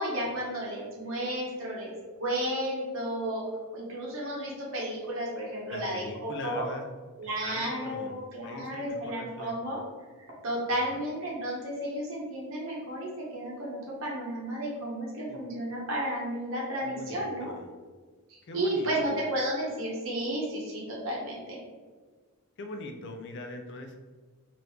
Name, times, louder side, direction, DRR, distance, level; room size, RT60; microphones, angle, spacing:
voice 1, 0.0-1.9 2.2-3.4 3.7-6.7 7.2-9.8 10.4-17.5 18.3-21.6, right 1 dB, 60° right, -4 dB, 0.8 m, -32 dB
voice 2, 5.7-6.9 7.4-9.8 10.7-10.8 15.3-15.4 16.8-17.7 18.4-19.3 22.6-24.0, left 2 dB, 55° left, 5 dB, 0.4 m, -42 dB
2.9 x 2.5 x 3.5 m, 1.4 s
head